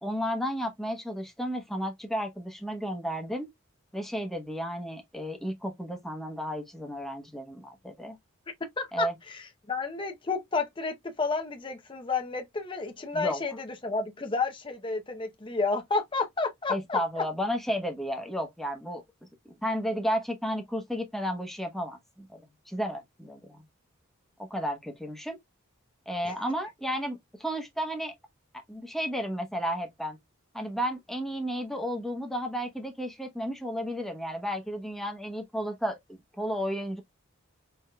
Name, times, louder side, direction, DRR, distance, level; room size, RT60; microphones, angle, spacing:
voice 1, 0.0-3.5 3.9-8.2 8.9-9.2 13.1-13.4 16.7-19.0 19.6-23.5 24.5-25.4 26.1-28.1 28.7-30.2 30.5-37.0, equal, ahead, 1.0 m, -33 dB
voice 2, 8.8-9.4 9.7-17.2 26.2-26.3, left 4 dB, 25° left, 0.7 m, -31 dB
4.7 x 3.6 x 2.2 m
head